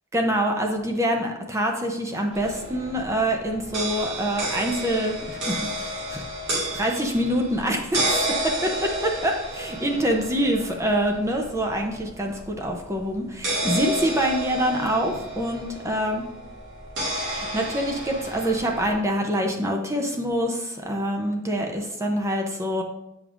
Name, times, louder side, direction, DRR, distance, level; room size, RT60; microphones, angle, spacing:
voice 1, 0.1-6.2 6.7-16.2 17.2-22.8, equal, 15° right, 2 dB, 0.6 m, -25 dB
sound 1, 2.3-18.9, right 1 dB, 55° right, 2.3 m, -31 dB
8.2 x 5.2 x 2.5 m, 0.90 s
head